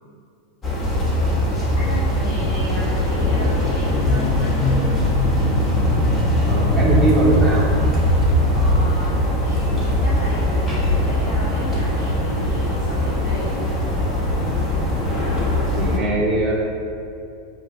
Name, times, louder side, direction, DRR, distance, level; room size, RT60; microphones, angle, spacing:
sound 1, 0.6-16.0, left 1 dB, 20° left, 1.4 m, -20 dB
voice 1, 1.4-4.5 8.5-13.6, left 1 dB, 50° left, -6 dB, 1.0 m, -35 dB
voice 2, 6.4-7.7 15.3-16.6, right 1 dB, 25° right, -7 dB, 1.2 m, -21 dB
7.7 x 2.7 x 6.0 m, 2.5 s
figure-of-eight pair, 90°, 0 cm